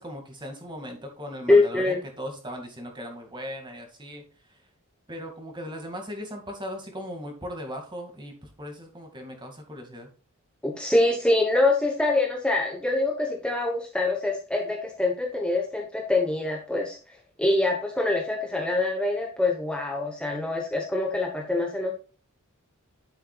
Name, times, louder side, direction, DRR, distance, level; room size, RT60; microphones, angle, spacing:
voice 1, 0.0-4.2 4.5-4.6 5.1-10.1, equal, 20° right, 3 dB, 2.2 m, -38 dB
voice 2, 1.5-2.0 10.6-17.0 17.4-21.9, left 2 dB, 5° left, 0 dB, 1.1 m, -24 dB
10.0 x 7.9 x 2.4 m, 0.37 s
head